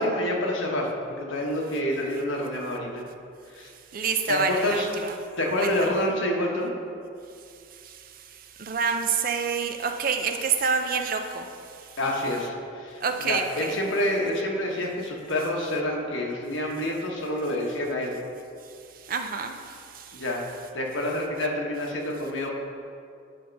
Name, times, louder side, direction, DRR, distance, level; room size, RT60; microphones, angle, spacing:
voice 1, 0.0-3.1 3.5-3.7 4.3-4.9 5.4-6.7 12.0-13.0 13.2-18.2 20.1-20.4 20.7-22.5, left 1 dB, 80° left, 0 dB, 1.2 m, -27 dB
voice 2, 3.9-5.2 5.6-5.9 7.7-12.0 13.0-13.8 18.9-20.2, right 5 dB, 45° right, 6 dB, 0.5 m, -28 dB
8.5 x 4.3 x 5.3 m, 2.4 s
head